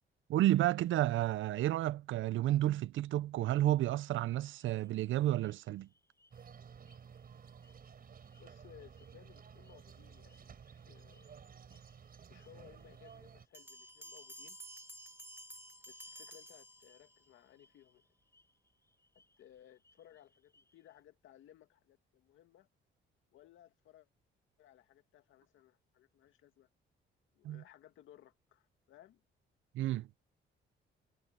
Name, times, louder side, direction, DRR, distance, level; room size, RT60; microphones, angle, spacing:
voice 1, 0.3-5.9 27.4-27.6 29.7-30.1, right 14 dB, 75° right, 0.6 m, -31 dB
sound 1, 4.2-21.0, left 2 dB, 15° left, 7.8 m, -74 dB
sound 2, 6.3-13.5, right 7 dB, 50° right, 4.6 m, -54 dB
voice 2, 8.4-11.3 12.3-14.6 15.9-18.1 19.1-22.7 23.3-24.1 24.6-26.7 27.3-29.2, left 12 dB, 80° left, 2.1 m, -61 dB
sound 3, 13.5-17.3, right 1 dB, 10° right, 2.0 m, -52 dB
cardioid pair, 90°, 20 cm